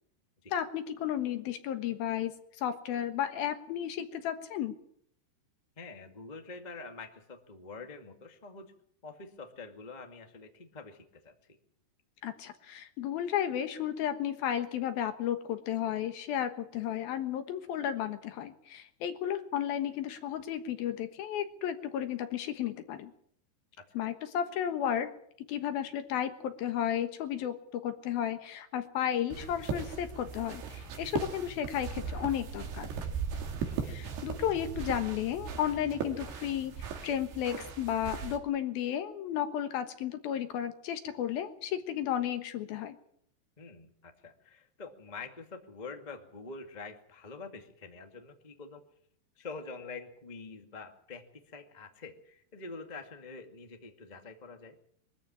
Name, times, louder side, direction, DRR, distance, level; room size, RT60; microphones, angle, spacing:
voice 1, 0.5-4.7 12.2-23.1 23.9-25.1 25.5-32.9 33.9-43.0, left 10 dB, 70° left, 8 dB, 3.0 m, -33 dB
voice 2, 5.8-8.7 9.0-11.3 23.8-23.9 33.6-34.0 43.6-48.8 49.4-54.8, left 4 dB, 25° left, 5 dB, 0.9 m, -46 dB
sound 1, 29.3-38.4, right 6 dB, 75° right, 4.5 m, -38 dB
22.5 x 14.0 x 8.8 m, 0.67 s
omnidirectional pair, 4.8 m